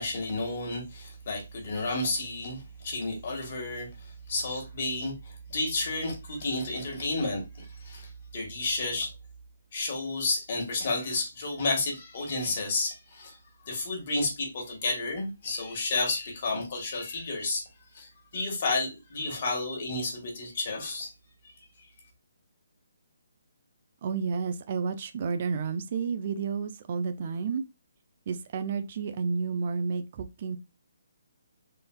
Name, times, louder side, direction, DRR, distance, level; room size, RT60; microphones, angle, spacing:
voice 1, 0.0-9.1 9.7-13.4 13.6-17.7 17.9-21.1, left 2 dB, 50° left, 1.5 m, -31 dB
voice 2, 24.0-27.6 28.3-30.6, right 5 dB, 45° right, 0.4 m, -31 dB
3.8 x 2.5 x 2.2 m
figure-of-eight pair, 145°, 0 cm